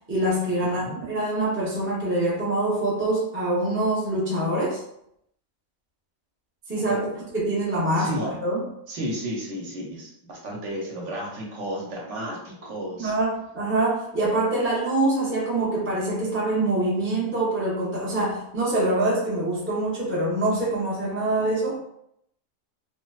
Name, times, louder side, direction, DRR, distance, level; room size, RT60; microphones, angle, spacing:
voice 1, 0.1-4.8 6.7-7.1 7.3-8.6 13.0-21.8, right 2 dB, 15° right, -6 dB, 0.4 m, -25 dB
voice 2, 0.6-1.0 6.8-7.2 8.0-8.3 8.9-13.1, equal, 70° right, -2 dB, 0.9 m, -33 dB
2.8 x 2.0 x 2.2 m, 0.75 s
omnidirectional pair, 1.4 m